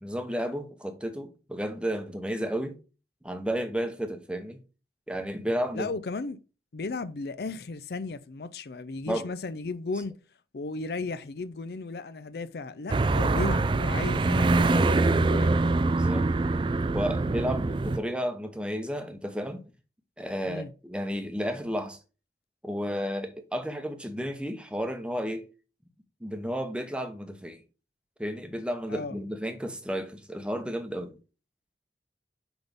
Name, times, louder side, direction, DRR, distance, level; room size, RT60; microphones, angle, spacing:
voice 1, 0.0-2.8 3.2-4.6 5.1-5.9 9.1-9.3 15.9-16.3 16.9-19.6 20.2-22.0 22.6-25.5 26.2-27.6 28.2-31.2, equal, 5° right, 0.8 m, -32 dB
voice 2, 5.7-6.4 6.7-10.2 10.5-15.5 20.4-20.7 28.9-29.2, left 3 dB, 60° left, 0.5 m, -35 dB
sound 1, 12.9-18.0, right 2 dB, 30° right, 0.3 m, -24 dB
6.1 x 5.3 x 3.5 m
head